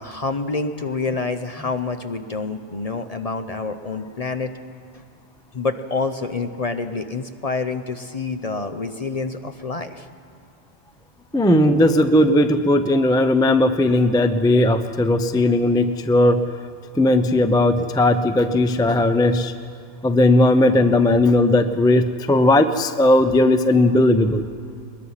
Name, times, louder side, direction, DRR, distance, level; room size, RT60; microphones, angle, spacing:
voice 1, 0.0-4.5 5.5-10.1, left 4 dB, 35° left, 7 dB, 0.8 m, -27 dB
voice 2, 11.3-16.5 17.0-19.5 20.0-24.4, left 1 dB, 5° left, 9 dB, 0.5 m, -17 dB
22.0 x 21.0 x 5.7 m, 2.4 s
omnidirectional pair, 1.2 m